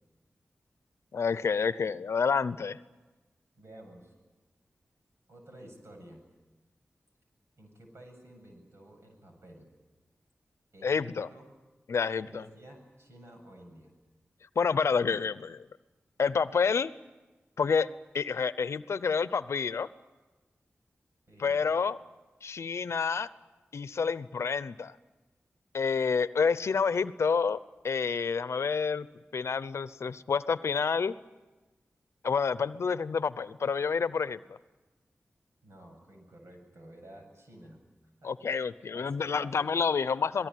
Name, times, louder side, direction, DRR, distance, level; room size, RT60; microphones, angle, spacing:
voice 1, 1.1-2.8 10.8-11.3 11.9-12.4 14.6-15.6 16.2-16.9 17.6-17.9 18.1-19.9 21.4-22.0 22.4-23.3 23.7-24.9 25.7-27.6 27.8-29.1 29.3-31.1 32.2-34.4 38.2-40.5, left 5 dB, 80° left, 15 dB, 0.8 m, -28 dB
voice 2, 3.5-4.1 5.3-6.2 7.6-9.7 10.7-11.4 12.2-13.9 21.3-21.7 35.6-37.8 38.2-38.3 38.9-39.7, right 1 dB, 70° right, 3 dB, 7.7 m, -52 dB
26.5 x 18.5 x 9.3 m, 1.2 s
cardioid pair, 50°, 5 cm